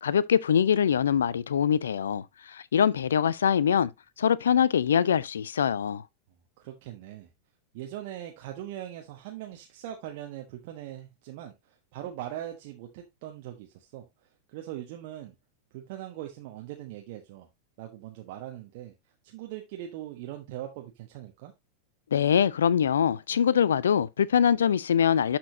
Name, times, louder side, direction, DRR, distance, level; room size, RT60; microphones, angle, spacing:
voice 1, 0.0-3.9 4.2-6.0 22.1-25.4, left 8 dB, 65° left, 0.4 m, -23 dB
voice 2, 6.6-7.3 7.7-14.1 14.5-15.3 15.7-17.5 17.8-18.9 19.2-21.5, right 12 dB, 50° right, 1.1 m, -41 dB
11.5 x 4.4 x 2.7 m
figure-of-eight pair, 90°, 0 cm